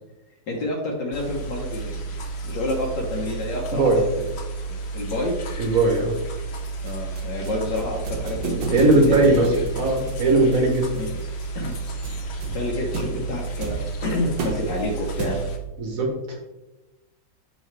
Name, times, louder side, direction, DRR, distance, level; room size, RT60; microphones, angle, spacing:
voice 1, 0.5-2.0 2.4-4.2 4.7-5.4 6.8-9.2 9.5-9.6 10.9-11.1 11.5-11.7 12.5-15.4, left 1 dB, 70° left, -1 dB, 1.7 m, -29 dB
sound 1, 1.1-15.6, right 3 dB, 55° left, 0.7 m, -32 dB
voice 2, 5.6-6.1 8.7-9.5 9.8-10.9 15.8-16.1, right 2 dB, 50° right, 1 dB, 1.5 m, -18 dB
sound 2, 6.9-15.7, right 3 dB, 85° right, 1.7 m, -34 dB
6.6 x 5.6 x 3.3 m, 1.0 s
omnidirectional pair, 2.0 m